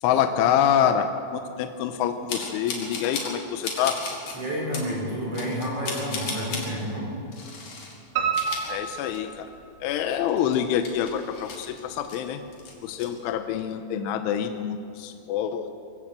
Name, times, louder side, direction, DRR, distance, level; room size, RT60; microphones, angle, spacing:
voice 1, 0.0-4.0 8.7-9.5 9.8-12.4 12.8-15.7, left 9 dB, 80° left, 7 dB, 3.2 m, -26 dB
sound 1, 2.3-3.4 3.6-4.4 4.7-4.9 5.3-6.7 7.3-7.9 8.2-9.4 9.8-9.9 10.3-12.2 12.5-13.1, left 4 dB, 45° left, 3.9 m, -35 dB
voice 2, 4.3-7.1, equal, 35° right, -4 dB, 4.5 m, -30 dB
Piano, 8.2-10.1 10.5-11.4 11.7-11.8 12.2-12.3 12.6-12.7, right 6 dB, 80° right, 4.6 m, -30 dB
24.0 x 16.0 x 7.6 m, 2.6 s
omnidirectional pair, 5.7 m